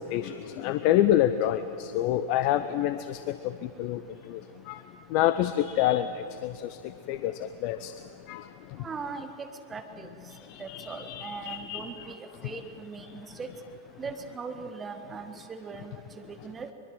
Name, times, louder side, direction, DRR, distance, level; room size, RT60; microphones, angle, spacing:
voice 1, 0.0-4.0 4.3-4.4 4.7-4.8 5.1-6.8 7.1-7.9 8.3-8.4 10.3-11.8, left 12 dB, 45° left, 12 dB, 0.7 m, -27 dB
voice 2, 8.8-10.1 10.6-13.5 14.0-16.7, right 5 dB, 20° right, 7 dB, 1.6 m, -40 dB
23.0 x 23.0 x 7.7 m, 2.6 s
figure-of-eight pair, 90°, 0 cm